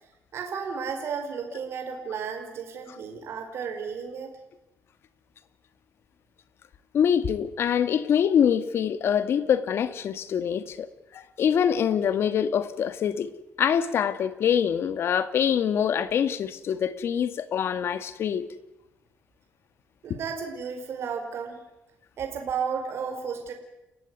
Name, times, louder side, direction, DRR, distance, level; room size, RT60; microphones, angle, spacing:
voice 1, 0.3-4.3 20.0-21.6 22.2-23.5, right 6 dB, 60° right, 4.8 m, -33 dB
voice 2, 6.9-10.9 11.1-13.3 13.6-18.5, left 8 dB, 55° left, 1.8 m, -24 dB
30.0 x 15.5 x 9.7 m
cardioid pair, 130°, 5 cm